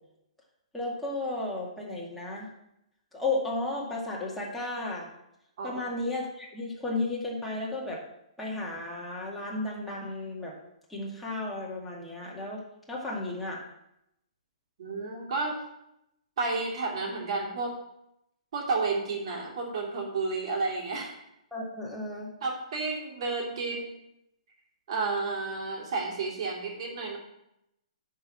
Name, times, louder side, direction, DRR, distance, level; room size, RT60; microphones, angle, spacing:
voice 1, 0.7-2.5 3.1-5.1 5.6-8.0 8.4-10.6 10.9-13.6 21.5-22.3, left 2 dB, 5° left, -5 dB, 2.1 m, -34 dB
voice 2, 14.8-15.5 16.4-17.7 18.5-21.1 22.4-24.0 24.9-27.2, right 3 dB, 55° right, -1 dB, 2.9 m, -31 dB
10.5 x 4.8 x 5.7 m, 0.82 s
hypercardioid pair, 140°, 4 cm